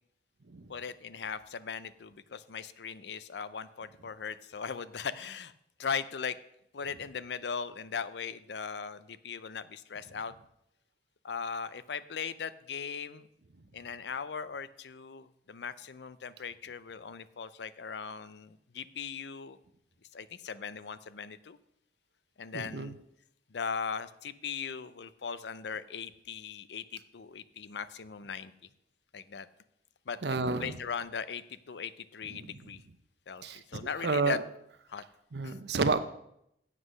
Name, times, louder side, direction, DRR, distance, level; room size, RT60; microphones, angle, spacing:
voice 1, 0.7-5.5 5.8-6.4 6.7-10.3 11.2-13.3 13.7-19.6 20.1-21.6 22.4-23.0 23.5-28.5 29.1-29.5 30.1-30.2 30.6-32.8 33.3-34.4 34.9-35.0 35.4-35.6, left 6 dB, 80° left, 15 dB, 0.5 m, -39 dB
voice 2, 22.5-22.9 30.2-30.7 32.3-32.5 33.4-34.4 35.3-36.0, right 3 dB, 75° right, 11 dB, 0.7 m, -30 dB
8.1 x 7.5 x 6.3 m, 0.78 s
head